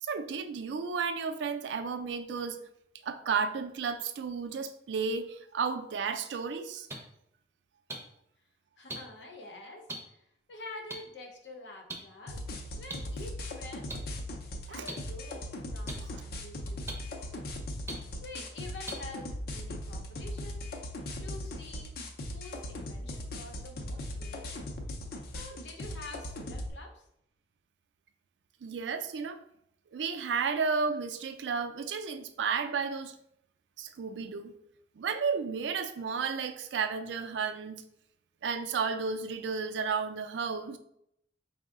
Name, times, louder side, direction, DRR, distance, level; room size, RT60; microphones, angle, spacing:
voice 1, 0.0-2.6 3.0-6.9 14.7-14.8 28.6-29.4 29.9-33.2 33.8-34.5 35.0-37.8 38.4-40.8, right 5 dB, 85° right, 8 dB, 0.4 m, -33 dB
sound 1, 6.9-7.0 7.9-8.0 8.9-9.0 9.9-10.0 10.9-11.0 11.9-12.0 12.9-13.0 13.9-14.0 14.9-15.0 15.9-16.0 16.9-17.0 17.9-18.0 18.9-19.0 19.8-19.9, right 2 dB, 15° right, 0.5 m, -37 dB
voice 2, 8.8-12.4 12.7-14.0 14.6-17.5 18.2-20.7 21.2-21.9 22.3-24.7 25.3-27.1, left 2 dB, 90° left, 2 dB, 0.8 m, -47 dB
sound 2, 12.3-26.7, left 1 dB, 60° left, 0.5 m, -39 dB
4.5 x 2.1 x 3.6 m, 0.74 s
head